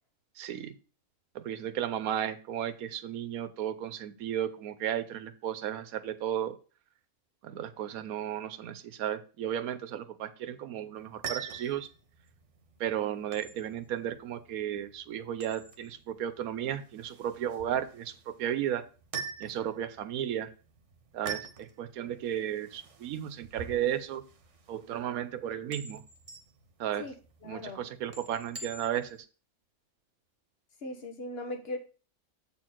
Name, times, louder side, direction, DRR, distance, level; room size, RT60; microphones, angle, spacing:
voice 1, 0.4-0.7 1.3-6.5 7.4-11.9 12.8-18.9 19.4-20.5 21.1-24.2 24.7-26.0 26.8-27.1 27.4-29.2, right 10 dB, 80° right, 1.2 m, -34 dB
sound 1, 11.0-29.2, right 6 dB, 60° right, 1.3 m, -45 dB
voice 2, 27.4-27.9 30.8-31.8, left 2 dB, 45° left, 1.5 m, -38 dB
7.8 x 4.5 x 5.9 m
omnidirectional pair, 1.5 m